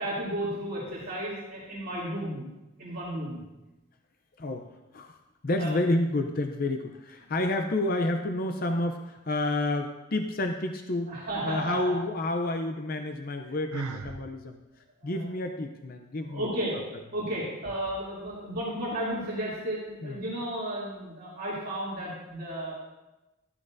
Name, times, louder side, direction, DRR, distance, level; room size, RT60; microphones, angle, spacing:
voice 1, 0.0-2.5 2.8-3.4 5.6-5.8 11.1-11.9 15.0-15.2 16.2-16.8 17.1-22.8, right 1 dB, 45° right, -8 dB, 2.9 m, -33 dB
voice 2, 4.4-4.7 4.9-5.1 5.4-11.2 11.4-14.6 15.0-16.5 20.0-20.2, left 2 dB, 45° left, 5 dB, 0.6 m, -29 dB
Sigh, 13.7-14.2, right 3 dB, 80° right, 0.6 m, -33 dB
14.5 x 13.0 x 2.7 m, 1.0 s
head